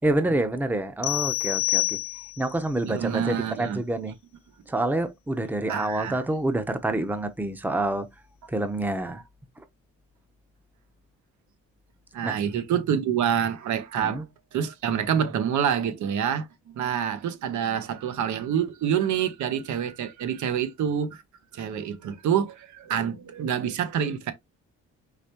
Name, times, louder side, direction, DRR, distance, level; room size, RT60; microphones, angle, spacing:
voice 1, 0.0-2.0 2.4-4.1 4.7-8.1 8.5-9.2 12.2-12.4 14.0-14.3, right 2 dB, 5° right, 0.7 m, -27 dB
sound 1, 1.0-2.6, left 19 dB, 75° left, 0.6 m, -27 dB
voice 2, 2.8-3.8 5.7-6.2 9.0-9.2 12.1-14.2 14.5-21.2 21.5-24.3, right 8 dB, 75° right, 1.0 m, -27 dB
5.0 x 3.4 x 2.9 m
cardioid pair, 90°, 30 cm